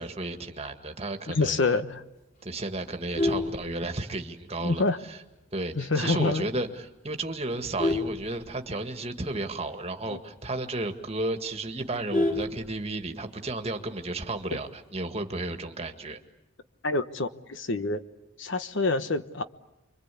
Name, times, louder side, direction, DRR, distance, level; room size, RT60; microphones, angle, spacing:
voice 1, 0.0-1.6 2.4-5.2 5.5-16.2, right 2 dB, 30° right, 6 dB, 1.8 m, -33 dB
voice 2, 1.3-2.0 4.6-5.0 5.7-6.5 10.1-10.2 16.8-18.0 18.4-19.4, left 3 dB, 60° left, 11 dB, 1.1 m, -27 dB
Vehicle horn car horn honking, 2.9-4.4 4.8-5.1 5.4-5.5 5.9-6.0 6.3-6.7 7.2-9.1 9.4-9.5 9.8-9.9 10.3-10.4 10.8-10.9 11.1-13.2 14.4-14.8, left 2 dB, 40° left, 3.3 m, -30 dB
29.5 x 24.0 x 8.4 m, 0.96 s
head